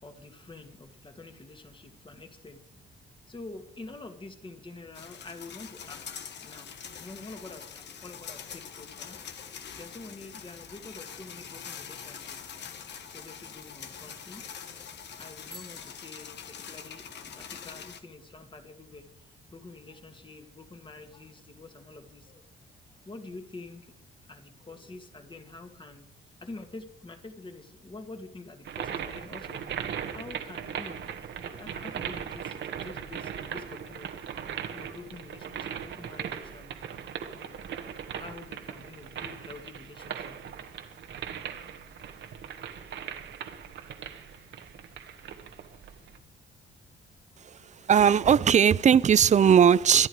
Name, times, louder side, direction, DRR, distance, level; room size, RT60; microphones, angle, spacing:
voice 1, 0.0-2.8 3.3-6.1 6.4-6.7 7.0-9.2 9.8-12.4 13.1-14.4 15.2-22.4 23.0-23.9 24.2-26.1 26.4-36.8 37.3-37.7 38.1-40.3, left 3 dB, 25° left, 2.3 m, -47 dB
sound 1, 4.9-18.0, left 7 dB, 60° left, 1.4 m, -44 dB
Bicycle bell, 15.4-17.2, equal, ahead, 1.7 m, -52 dB
sound 2, 28.7-46.2, right 8 dB, 70° right, 1.6 m, -39 dB
voice 2, 47.4-50.1, right 8 dB, 35° right, 0.6 m, -19 dB
24.5 x 10.5 x 4.9 m
cardioid pair, 90°, 20 cm